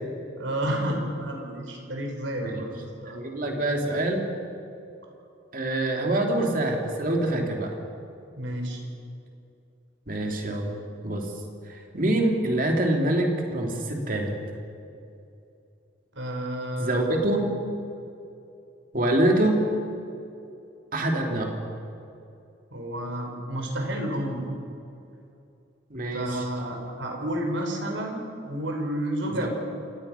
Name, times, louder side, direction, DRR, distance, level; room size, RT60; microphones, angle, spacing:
voice 1, 0.4-3.2 8.4-8.8 16.1-17.2 22.7-24.5 26.1-29.5, right 1 dB, 85° right, 2 dB, 4.6 m, -31 dB
voice 2, 3.1-4.3 5.5-7.7 10.1-11.3 11.7-14.3 16.8-17.5 18.9-19.6 20.9-21.6 25.9-26.4 29.3-29.5, right 1 dB, 45° right, 2 dB, 2.9 m, -25 dB
27.5 x 17.0 x 5.8 m, 2.6 s
head